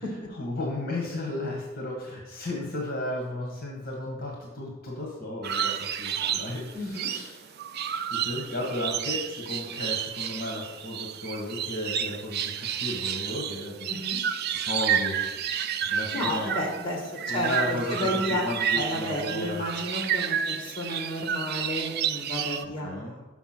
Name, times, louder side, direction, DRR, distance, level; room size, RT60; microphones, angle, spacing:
voice 1, 0.3-7.5 8.1-13.9 14.5-16.5 17.3-19.7 22.6-23.2, left 1 dB, 45° left, -1 dB, 1.4 m, -34 dB
sound 1, 5.4-22.6, right 9 dB, 50° right, 0.4 m, -30 dB
voice 2, 6.7-7.1 13.9-14.2 16.1-18.4 18.7-23.2, left 1 dB, 25° left, 0 dB, 1.7 m, -32 dB
6.2 x 5.8 x 6.0 m, 1.1 s
head